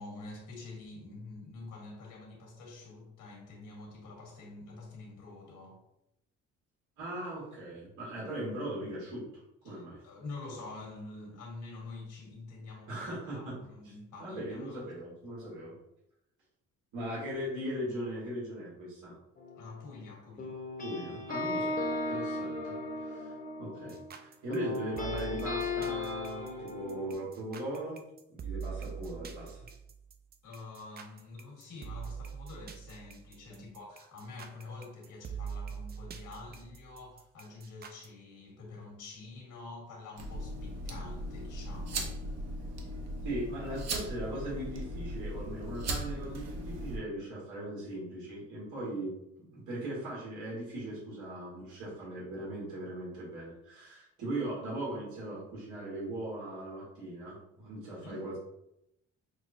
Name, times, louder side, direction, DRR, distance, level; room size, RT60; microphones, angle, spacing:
voice 1, 0.0-5.8 9.6-14.8 19.6-20.6 30.4-42.2 57.9-58.2, left 3 dB, 75° left, -1 dB, 1.4 m, -47 dB
voice 2, 7.0-9.3 9.6-10.0 12.9-13.6 13.8-13.9 14.2-15.7 16.9-19.1 20.8-28.0 28.3-29.7 33.5-33.7 43.2-49.1 49.4-58.4, right 1 dB, 85° right, -7 dB, 1.5 m, -39 dB
sound 1, 19.4-20.0 20.4-24.1 24.5-27.1, left 2 dB, 30° left, 0.7 m, -36 dB
sound 2, 23.9-38.1, right 7 dB, 35° right, 0.4 m, -44 dB
sound 3, 40.2-47.0, right 1 dB, 60° right, 0.8 m, -38 dB
6.1 x 2.1 x 2.6 m, 0.83 s
cardioid pair, 90°, 30 cm